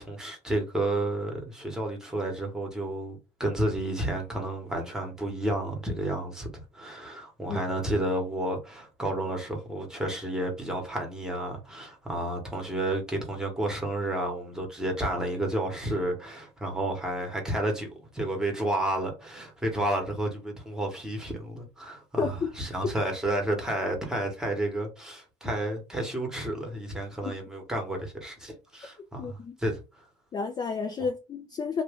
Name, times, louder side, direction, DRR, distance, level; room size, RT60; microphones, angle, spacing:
voice 1, 0.0-6.5 6.7-30.1, right 1 dB, 5° right, 1.1 m, -31 dB
voice 2, 22.2-22.5 27.2-27.3 29.2-29.6 30.3-31.8, left 5 dB, 25° left, 0.4 m, -31 dB
2.6 x 2.3 x 3.4 m
cardioid pair, 120°, 16 cm